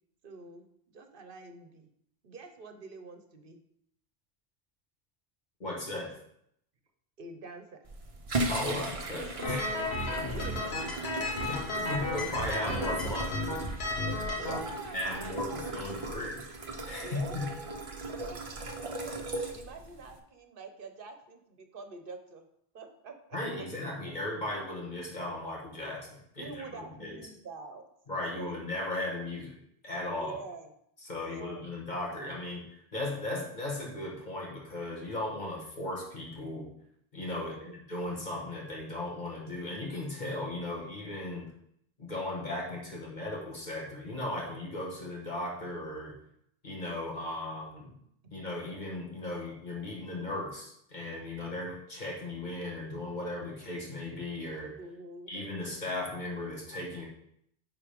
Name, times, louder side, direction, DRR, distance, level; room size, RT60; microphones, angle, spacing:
voice 1, 0.2-0.6 0.9-1.9 2.2-3.6 7.2-7.8 10.2-11.1 14.0-15.6 16.0-16.1 17.0-22.4 22.7-23.7 26.4-27.8 28.3-28.6 30.2-30.7 31.2-31.6 37.4-37.8 54.8-55.3, right 3 dB, 60° right, 6 dB, 1.1 m, -46 dB
voice 2, 5.6-6.2 8.5-10.0 11.5-13.3 14.9-16.4 16.8-17.5 23.3-27.2 28.1-30.4 31.0-36.7 37.1-41.5 42.0-46.1 46.6-47.9 48.3-54.8 55.3-57.1, left 2 dB, 45° left, -3 dB, 1.8 m, -37 dB
sound 1, 7.8-20.2, right 2 dB, 35° right, 0.8 m, -38 dB
sound 2, 9.4-14.6, left 2 dB, 70° left, 1.4 m, -33 dB
9.7 x 3.8 x 5.1 m, 0.72 s
omnidirectional pair, 1.1 m